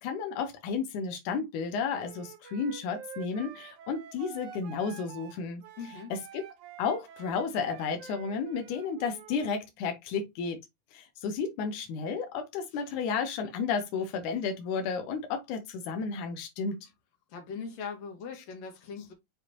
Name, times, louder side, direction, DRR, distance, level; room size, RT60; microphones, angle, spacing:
voice 1, 0.0-5.6 6.1-6.4 6.8-10.6 10.9-16.9, left 5 dB, 90° left, 2.4 m, -32 dB
Wind instrument woodwind instrument, 2.0-9.5, right 8 dB, 85° right, 2.4 m, -48 dB
voice 2, 5.8-6.1 17.3-19.1, left 5 dB, 60° left, 2.8 m, -40 dB
6.5 x 5.1 x 2.8 m
omnidirectional pair, 3.4 m